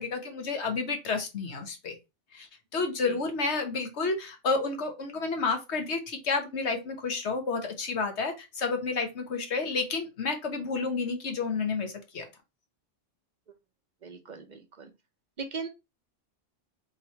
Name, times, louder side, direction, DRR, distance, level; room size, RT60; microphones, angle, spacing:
voice 1, 0.0-2.0 2.3-2.5 2.7-12.2, left 4 dB, 65° left, 1.3 m, -30 dB
voice 2, 14.0-14.9 15.4-15.7, right 4 dB, 45° right, 0.7 m, -39 dB
3.7 x 2.9 x 4.3 m
omnidirectional pair, 1.2 m